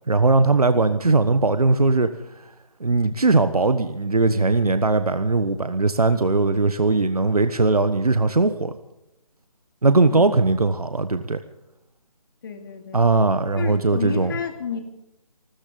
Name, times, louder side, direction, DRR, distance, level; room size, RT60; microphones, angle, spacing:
voice 1, 0.1-2.1 2.8-8.7 9.8-11.4 12.9-14.3, right 3 dB, 85° right, 10 dB, 1.2 m, -19 dB
voice 2, 10.1-10.5 12.4-13.0 13.6-14.8, left 6 dB, 35° left, 5 dB, 2.6 m, -31 dB
28.0 x 13.5 x 3.9 m, 0.90 s
figure-of-eight pair, 155°, 19 cm